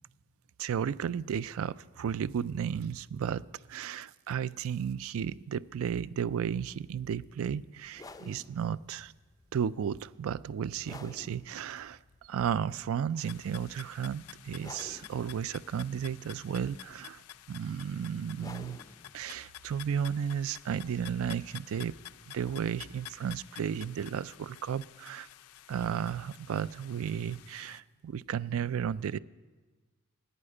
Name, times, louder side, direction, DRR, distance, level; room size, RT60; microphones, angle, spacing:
voice 1, 0.6-9.1 9.5-18.8 19.1-22.0 22.3-25.3 25.7-29.2, right 8 dB, 65° right, 19 dB, 0.3 m, -34 dB
sound 1, 7.9-23.2, left 3 dB, 15° left, 0.4 m, -54 dB
sound 2, 13.2-27.8, left 12 dB, 85° left, 0.4 m, -51 dB
11.5 x 8.6 x 9.8 m, 1.3 s
head